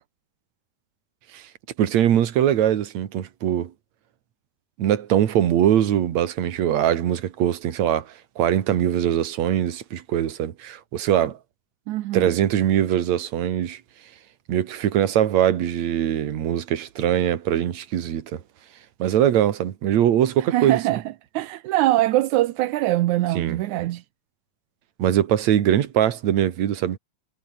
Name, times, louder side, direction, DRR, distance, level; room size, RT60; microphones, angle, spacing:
voice 1, 1.8-3.7 4.8-8.1 8.4-11.4 12.1-13.8 14.5-18.4 19.0-20.8 23.4-23.6 25.0-27.0, right 10 dB, 55° right, 2.6 m, -22 dB
voice 2, 11.9-12.4 20.4-24.0, right 16 dB, 70° right, 1.9 m, -23 dB
omnidirectional pair, 4.2 m